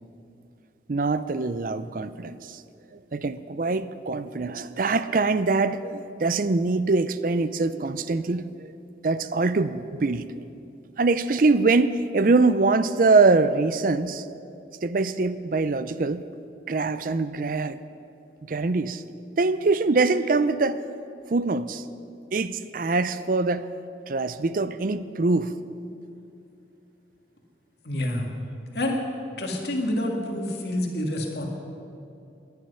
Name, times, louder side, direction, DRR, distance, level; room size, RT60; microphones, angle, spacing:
voice 1, 0.9-2.6 2.9-8.7 9.0-10.2 11.0-14.2 14.8-16.2 16.7-17.8 18.5-19.0 19.4-20.8 21.3-21.8 22.3-23.7 24.1-25.5, right 3 dB, 50° right, 14 dB, 0.5 m, -23 dB
voice 2, 27.8-28.3 28.7-29.0 29.4-31.5, left 1 dB, 65° left, 1 dB, 2.1 m, -27 dB
18.0 x 10.5 x 5.6 m, 2.7 s
head